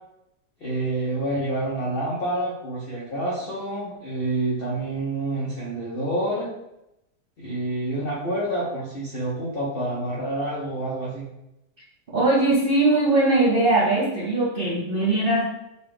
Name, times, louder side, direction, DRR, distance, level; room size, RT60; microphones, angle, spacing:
voice 1, 0.6-6.5 7.4-11.3, right 1 dB, 50° left, -6 dB, 0.7 m, -28 dB
voice 2, 12.1-15.4, right 2 dB, 45° right, -6 dB, 0.7 m, -20 dB
4.0 x 2.3 x 3.4 m, 0.86 s
omnidirectional pair, 1.8 m